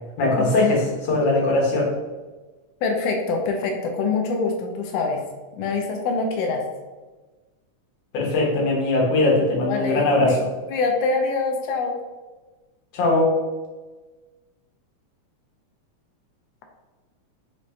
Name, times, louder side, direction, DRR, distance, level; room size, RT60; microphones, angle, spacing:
voice 1, 0.2-1.9 8.1-10.4 12.9-13.3, left 2 dB, 65° left, -3 dB, 2.0 m, -20 dB
voice 2, 2.8-5.2 5.6-6.6 9.7-10.4 10.7-12.0, left 4 dB, 85° left, 2 dB, 1.4 m, -24 dB
5.4 x 2.6 x 3.2 m, 1.2 s
omnidirectional pair, 3.4 m